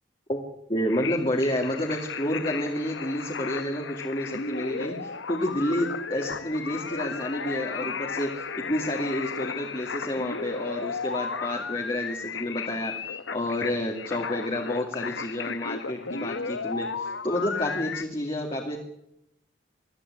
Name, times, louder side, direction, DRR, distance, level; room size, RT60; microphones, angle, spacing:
voice 1, 0.7-18.8, left 1 dB, 30° left, 1 dB, 2.5 m, -30 dB
sound 1, 0.9-18.0, left 5 dB, 80° left, 1.2 m, -34 dB
21.5 x 13.5 x 9.9 m, 0.83 s
head